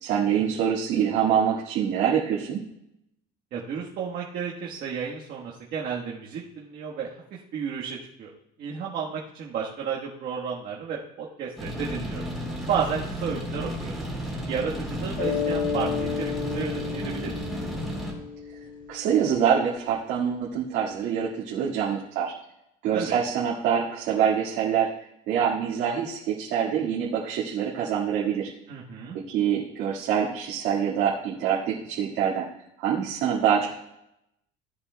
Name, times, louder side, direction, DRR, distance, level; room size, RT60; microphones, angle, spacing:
voice 1, 0.0-2.6 18.9-22.3 22.8-24.9 25.3-28.5 29.1-32.5 32.8-33.8, right 8 dB, 75° right, -6 dB, 1.9 m, -25 dB
voice 2, 3.5-8.3 8.6-12.3 12.7-14.0 14.5-17.5 22.9-23.2 28.7-29.2, right 6 dB, 55° right, -3 dB, 1.4 m, -32 dB
sound 1, 11.6-18.1, equal, ahead, 3.5 m, -33 dB
Mallet percussion, 15.2-19.6, left 6 dB, 50° left, 1.7 m, -32 dB
16.5 x 8.4 x 2.3 m, 0.83 s
cardioid pair, 140°, 19 cm